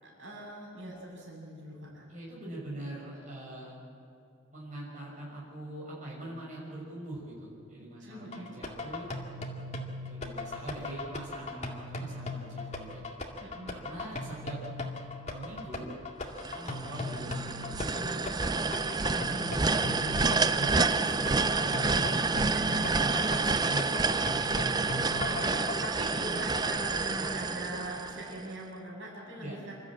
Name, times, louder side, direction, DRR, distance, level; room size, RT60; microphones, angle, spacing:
voice 1, 0.0-2.1 8.0-8.5 13.4-13.8 19.1-19.5 21.4-22.1 22.5-23.7 25.1-29.7, right 1 dB, 60° right, -3 dB, 6.8 m, -42 dB
voice 2, 2.1-3.8 4.5-9.1 10.0-13.0 13.7-14.6 15.2-15.9 16.5-18.2 18.8-22.3 22.9-24.2 29.4-29.6, right 1 dB, 35° right, -6 dB, 6.3 m, -42 dB
sound 1, 8.3-25.9, left 2 dB, 30° left, 2.2 m, -38 dB
sound 2, 16.4-28.5, right 4 dB, 20° right, 0.5 m, -29 dB
27.5 x 13.5 x 8.7 m, 2.7 s
head